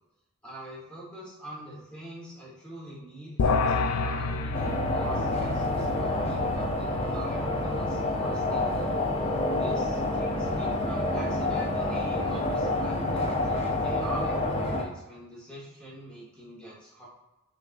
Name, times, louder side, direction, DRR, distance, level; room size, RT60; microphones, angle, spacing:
voice 1, 0.4-8.9 9.5-17.1, right 1 dB, 5° left, -6 dB, 1.2 m, -43 dB
sound 1, 3.4-8.9, left 3 dB, 80° left, 0.3 m, -31 dB
sound 2, 4.5-14.8, left 2 dB, 25° left, 0.6 m, -28 dB
6.0 x 2.6 x 2.5 m, 0.98 s
head